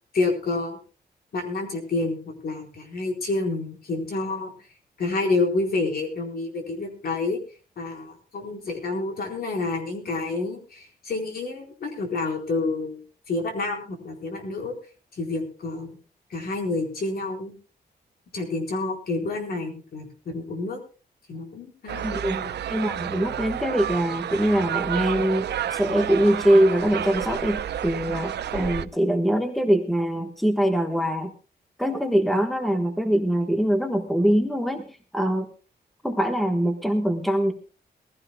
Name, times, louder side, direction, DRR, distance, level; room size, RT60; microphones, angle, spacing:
voice 1, 0.1-0.8 1.3-4.5 5.0-7.4 7.8-13.0 13.3-14.7 15.1-16.0 16.3-17.5 18.3-20.8 21.3-22.5, left 3 dB, 65° left, 2 dB, 4.3 m, -28 dB
sound 1, 21.9-28.9, right 10 dB, 90° right, 0.6 m, -30 dB
voice 2, 22.0-22.4 22.7-25.5 25.7-31.3 31.8-34.8 35.1-35.5 36.0-37.5, equal, ahead, 5 dB, 1.2 m, -23 dB
21.5 x 15.5 x 2.2 m, 0.36 s
wide cardioid pair, 175°, 17 cm